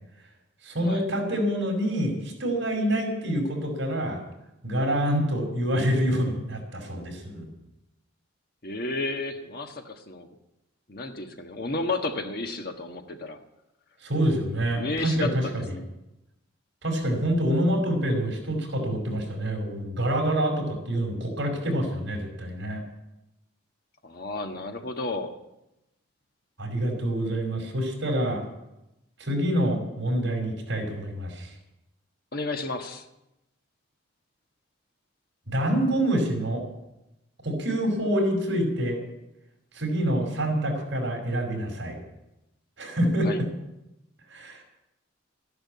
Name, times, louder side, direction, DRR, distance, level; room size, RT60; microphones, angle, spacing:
voice 1, 0.6-4.2 4.6-7.5 14.0-15.3 15.5-15.7 16.8-22.8 26.6-28.4 29.2-31.5 35.5-36.6 37.4-39.0 39.7-42.0 42.8-43.3 44.3-44.6, right 1 dB, 65° right, 1 dB, 5.3 m, -26 dB
voice 2, 8.6-10.3 10.9-13.4 14.8-15.8 24.0-25.3 32.3-33.0 43.2-43.4, left 2 dB, 50° left, 4 dB, 1.4 m, -32 dB
14.0 x 11.0 x 8.5 m, 0.91 s
head